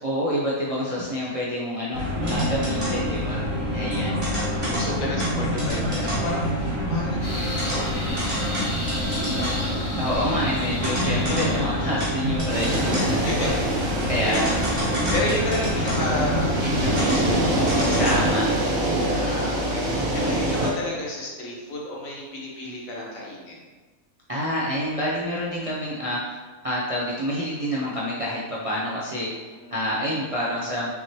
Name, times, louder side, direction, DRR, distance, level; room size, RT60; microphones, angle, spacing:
voice 1, 0.0-3.4 3.7-4.2 10.0-13.5 14.0-14.7 18.0-18.5 24.3-30.9, equal, 40° right, -7 dB, 0.5 m, -27 dB
sound 1, 1.9-18.3, equal, 20° right, 1.3 m, -26 dB
voice 2, 4.3-9.6 10.3-10.5 10.8-11.0 11.4-11.7 13.2-13.6 14.0-18.2 19.0-23.5 29.6-30.0, left 1 dB, 75° left, -4 dB, 1.5 m, -32 dB
sound 2, 7.2-12.9, left 1 dB, 50° left, 1.7 m, -35 dB
sound 3, 12.5-20.7, right 1 dB, 75° right, 1.5 m, -25 dB
5.6 x 3.0 x 2.9 m, 1.3 s
omnidirectional pair, 1.5 m